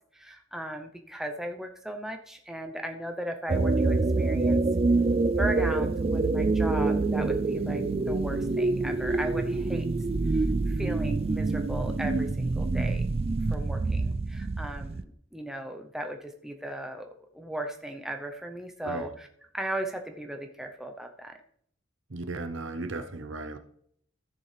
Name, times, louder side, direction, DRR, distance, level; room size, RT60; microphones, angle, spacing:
voice 1, 0.1-4.6 5.3-9.9 10.2-13.0 13.5-19.3 19.5-21.3, right 1 dB, ahead, 3 dB, 0.7 m, -37 dB
sound 1, 3.5-15.0, right 3 dB, 30° right, 0.3 m, -26 dB
voice 2, 22.1-23.6, right 3 dB, 65° right, 8 dB, 0.8 m, -36 dB
14.0 x 6.8 x 3.4 m, 0.66 s
head